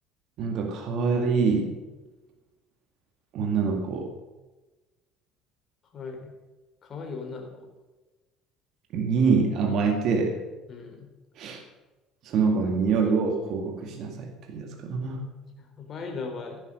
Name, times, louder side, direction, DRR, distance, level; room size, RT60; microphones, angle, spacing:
voice 1, 0.4-1.8 3.3-4.1 8.9-10.4 11.4-11.6 12.2-15.2, right 5 dB, 50° right, 3 dB, 2.2 m, -25 dB
voice 2, 5.9-6.3 6.8-7.7 10.7-11.1 15.6-16.6, left 4 dB, 35° left, 3 dB, 3.5 m, -38 dB
15.0 x 11.0 x 6.5 m, 1.2 s
cardioid pair, 145°, 0 cm